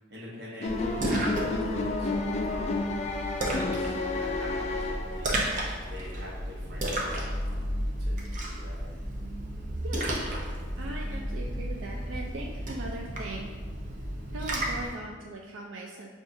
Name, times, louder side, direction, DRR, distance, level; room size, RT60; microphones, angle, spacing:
voice 1, 0.0-3.1 3.4-5.3 5.9-7.1 7.4-7.7 8.0-9.0, left 1 dB, 60° right, -5 dB, 1.1 m, -45 dB
sound 1, 0.6-5.5, left 3 dB, 35° left, 0.3 m, -31 dB
Splash splatter, 0.7-14.9, right 1 dB, 40° right, 0.6 m, -33 dB
voice 2, 9.8-10.2 10.8-13.5 14.3-16.1, right 2 dB, 85° right, 0 dB, 0.3 m, -39 dB
6.3 x 2.3 x 2.6 m, 1.5 s
head